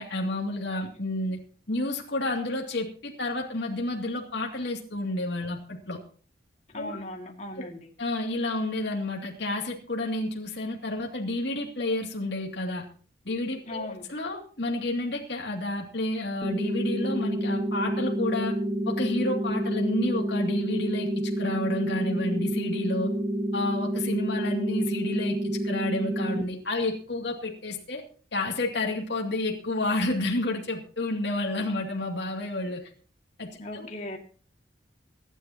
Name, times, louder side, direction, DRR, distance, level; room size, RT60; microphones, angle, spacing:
voice 1, 0.0-1.4 1.7-6.0 6.8-7.0 7.6-7.7 8.0-12.8 13.2-18.6 18.9-23.1 23.5-25.4 25.6-28.0 28.3-32.8 33.4-33.9, left 2 dB, 65° left, 0 dB, 2.7 m, -30 dB
voice 2, 6.7-7.9 13.7-14.0 33.6-34.2, left 1 dB, 35° left, 2 dB, 2.4 m, -38 dB
sound 1, 16.4-26.4, right 1 dB, 30° right, 1.4 m, -29 dB
24.5 x 10.5 x 3.0 m, 0.41 s
head